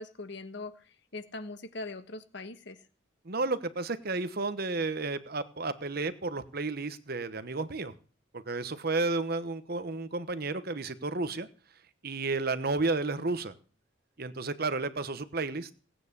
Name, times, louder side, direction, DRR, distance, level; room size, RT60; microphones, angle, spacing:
voice 1, 0.0-2.8, left 2 dB, 60° left, 10 dB, 1.4 m, -41 dB
voice 2, 3.2-7.9 8.3-11.5 12.0-13.5 14.2-15.7, right 3 dB, 50° right, 12 dB, 1.1 m, -32 dB
18.0 x 9.2 x 6.7 m, 0.39 s
head